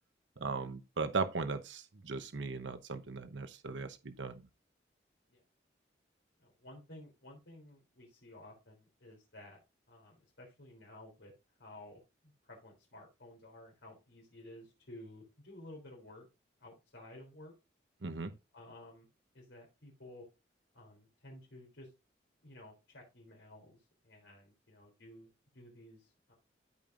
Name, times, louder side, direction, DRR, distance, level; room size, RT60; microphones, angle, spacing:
voice 1, 0.4-4.4 18.0-18.3, right 4 dB, 90° right, 0.9 m, -38 dB
voice 2, 6.4-9.6 9.9-11.3 11.6-16.3 16.6-17.5 18.5-19.1 19.3-20.3 20.7-21.9 22.4-26.3, left 1 dB, 90° left, 3.6 m, -54 dB
13.5 x 5.3 x 2.6 m
head